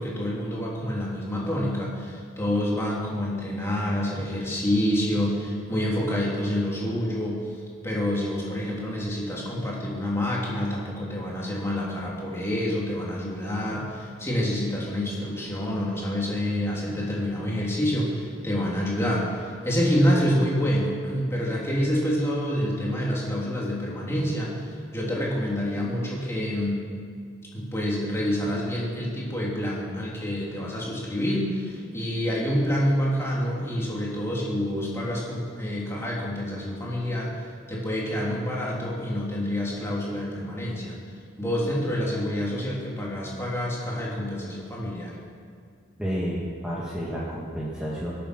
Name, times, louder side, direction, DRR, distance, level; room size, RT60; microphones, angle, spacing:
voice 1, 0.0-7.6 7.8-26.8 27.5-37.3 37.7-40.9 41.4-45.1, equal, 15° left, -5 dB, 3.2 m, -27 dB
voice 2, 46.0-48.1, equal, 5° right, -7 dB, 1.8 m, -30 dB
23.5 x 8.5 x 6.1 m, 2.1 s
head